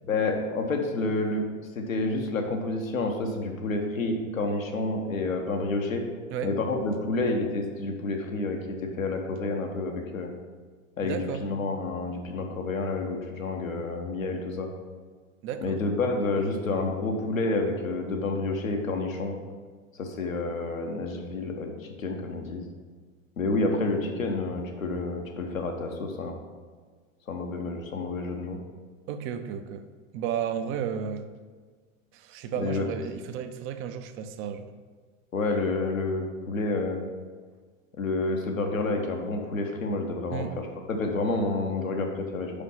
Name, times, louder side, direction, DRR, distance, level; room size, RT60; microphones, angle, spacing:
voice 1, 0.1-1.4 1.7-6.0 6.4-10.3 11.0-14.7 15.6-19.4 19.9-22.6 23.4-26.4 27.3-28.6 32.5-32.8 35.3-37.0 38.0-42.5, left 2 dB, 80° left, 3 dB, 1.1 m, -29 dB
voice 2, 11.0-11.4 15.4-15.8 29.1-29.8 30.1-31.3 32.1-34.7 40.3-40.5, right 8 dB, 35° right, 9 dB, 0.5 m, -33 dB
5.4 x 5.0 x 5.6 m, 1.5 s
figure-of-eight pair, 85°, 40 cm